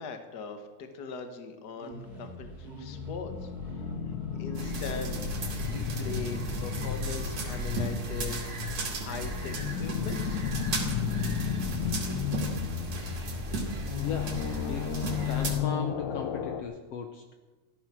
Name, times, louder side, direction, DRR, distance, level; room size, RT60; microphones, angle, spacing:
voice 1, 0.0-3.8 4.3-10.4, left 5 dB, 40° left, 6 dB, 1.7 m, -41 dB
sound 1, 1.8-8.4, right 3 dB, 35° right, 2.6 m, -47 dB
sound 2, 2.6-16.6, left 8 dB, 90° left, 2.5 m, -34 dB
sound 3, 4.5-15.6, right 2 dB, 70° right, 3.9 m, -35 dB
voice 2, 14.0-17.3, left 6 dB, 65° left, 5 dB, 1.8 m, -38 dB
14.5 x 14.0 x 6.3 m, 1.3 s
omnidirectional pair, 3.3 m